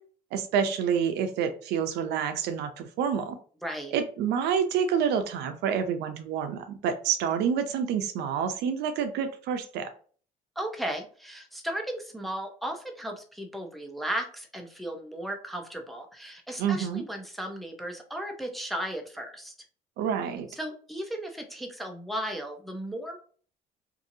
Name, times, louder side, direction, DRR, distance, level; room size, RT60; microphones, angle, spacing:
voice 1, 0.3-3.4 3.9-9.9 16.6-17.0 20.0-20.5, right 7 dB, 80° right, 8 dB, 0.5 m, -28 dB
voice 2, 3.6-3.9 10.6-19.5 20.6-23.2, right 1 dB, ahead, 2 dB, 0.5 m, -35 dB
2.7 x 2.6 x 2.6 m, 0.44 s
cardioid pair, 110°, 17 cm